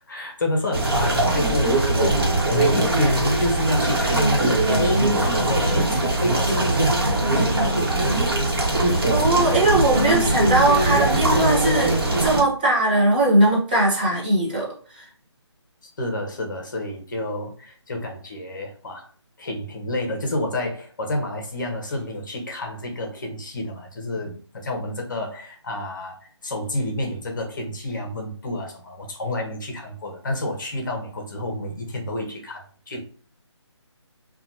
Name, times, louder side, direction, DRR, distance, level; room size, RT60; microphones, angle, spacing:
voice 1, 0.1-7.6 15.8-19.1 19.4-33.0, left 1 dB, 45° left, 2 dB, 0.7 m, -29 dB
sound 1, 0.7-12.4, right 2 dB, 50° right, 1.0 m, -21 dB
voice 2, 9.1-14.7 14.9-15.0, right 2 dB, 20° right, -5 dB, 0.6 m, -20 dB
2.7 x 2.2 x 2.7 m, 0.42 s
figure-of-eight pair, 155°, 15 cm